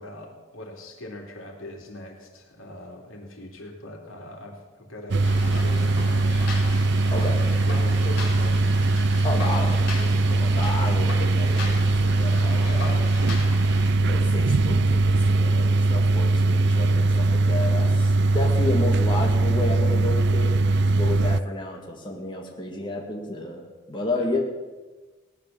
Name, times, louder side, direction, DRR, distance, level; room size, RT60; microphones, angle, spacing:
voice 1, 0.0-6.4 6.9-8.7 24.1-24.3, left 1 dB, 80° left, 1 dB, 3.1 m, -41 dB
sound 1, 5.1-21.4, right 2 dB, 55° right, 0.5 m, -21 dB
sound 2, 5.2-13.9, left 3 dB, 60° left, 4.5 m, -37 dB
voice 2, 9.2-13.0 14.0-23.6 23.9-24.4, left 2 dB, 25° left, -1 dB, 2.1 m, -31 dB
18.0 x 10.5 x 7.1 m, 1.2 s
head